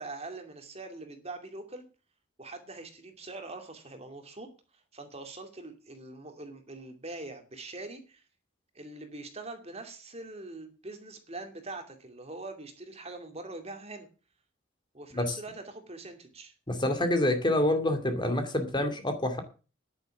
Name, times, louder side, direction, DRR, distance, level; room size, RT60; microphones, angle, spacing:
voice 1, 0.0-1.8 2.4-4.5 4.9-8.2 8.7-14.1 14.9-16.5, right 2 dB, 30° right, 5 dB, 2.5 m, -43 dB
voice 2, 16.7-19.4, left 1 dB, 25° left, 6 dB, 2.3 m, -27 dB
10.5 x 9.4 x 7.2 m, 0.35 s
head